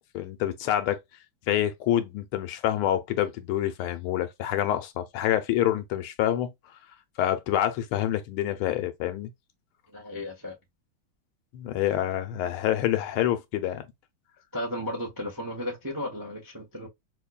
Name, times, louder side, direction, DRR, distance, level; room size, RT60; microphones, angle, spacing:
voice 1, 0.1-1.0 1.5-6.5 7.2-9.3 11.5-13.8, left 12 dB, 80° left, 1.5 m, -27 dB
voice 2, 9.9-10.5 14.5-16.9, left 1 dB, 20° right, 0.5 m, -34 dB
5.4 x 2.2 x 2.3 m
omnidirectional pair, 2.4 m